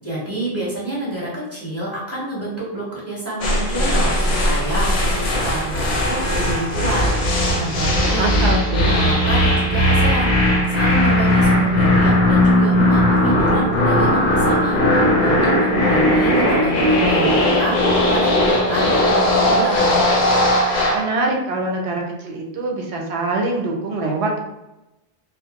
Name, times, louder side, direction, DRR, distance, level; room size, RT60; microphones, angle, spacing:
voice 1, 0.0-8.3 8.7-20.0, right 1 dB, 15° left, -7 dB, 0.7 m, -28 dB
sound 1, 3.4-21.1, left 1 dB, 60° left, 0.7 m, -17 dB
voice 2, 8.0-9.0 20.9-24.4, right 2 dB, 80° right, 1 dB, 0.9 m, -24 dB
2.5 x 2.0 x 2.8 m, 0.94 s
omnidirectional pair, 1.1 m